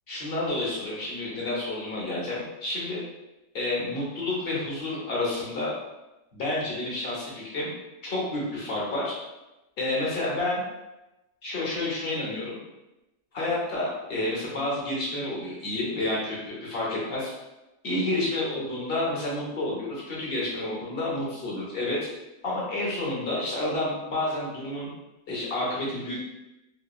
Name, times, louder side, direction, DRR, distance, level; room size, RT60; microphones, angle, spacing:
voice 1, 0.1-3.0 3.5-5.7 6.3-7.7 8.0-9.1 9.8-10.6 11.4-12.6 13.3-17.3 17.8-22.1 22.4-24.9 25.3-26.2, left 2 dB, 50° left, -5 dB, 0.9 m, -29 dB
2.9 x 2.1 x 2.3 m, 0.97 s
omnidirectional pair, 1.4 m